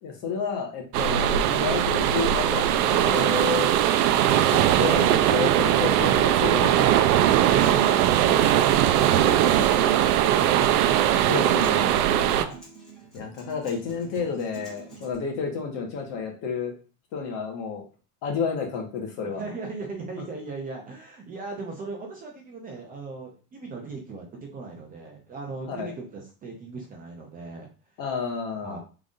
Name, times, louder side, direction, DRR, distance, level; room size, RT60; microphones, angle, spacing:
voice 1, 0.0-3.7 4.2-6.9 8.9-9.5 11.2-12.1 13.1-16.7 17.1-17.8 18.2-19.4 25.7-25.9 28.0-28.8, left 5 dB, 45° left, 1 dB, 1.4 m, -31 dB
sound 1, 0.9-12.5, right 11 dB, 80° right, 0.6 m, -20 dB
Acoustic guitar, 7.2-15.1, right 3 dB, ahead, 2.7 m, -46 dB
voice 2, 7.5-10.6 12.2-12.6 19.3-27.7 28.6-28.8, right 3 dB, 20° right, 0 dB, 0.6 m, -38 dB
5.3 x 3.8 x 2.5 m, 0.35 s
supercardioid pair, 160°, 45 cm